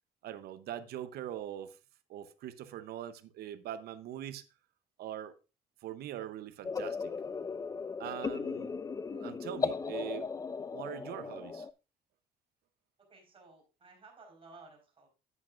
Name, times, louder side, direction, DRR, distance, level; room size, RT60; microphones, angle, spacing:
voice 1, 0.2-1.8 2.1-4.4 5.0-5.3 5.8-7.1 8.0-8.7 9.1-10.3 10.7-11.7, right 11 dB, 70° right, 0.8 m, -42 dB
sound 1, 6.6-11.7, left 5 dB, 20° left, 0.4 m, -37 dB
voice 2, 13.1-15.1, right 3 dB, 35° right, 4.3 m, -56 dB
11.0 x 8.4 x 2.5 m
cardioid pair, 110°, 17 cm